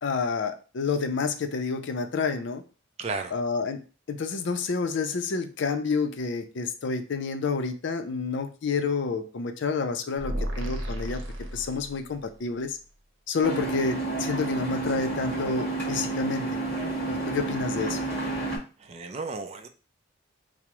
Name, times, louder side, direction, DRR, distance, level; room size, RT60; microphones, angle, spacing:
voice 1, 0.0-2.6 3.3-11.2 11.5-12.8 13.3-16.6 17.1-18.0, left 4 dB, 60° left, 7 dB, 0.4 m, -29 dB
voice 2, 3.0-3.3 18.8-19.7, right 3 dB, 30° right, 7 dB, 0.3 m, -34 dB
sound 1, 10.2-12.3, equal, 65° right, 0.8 m, -33 dB
sound 2, 13.4-18.6, right 3 dB, 10° left, 1.7 m, -30 dB
4.7 x 2.0 x 2.9 m, 0.36 s
head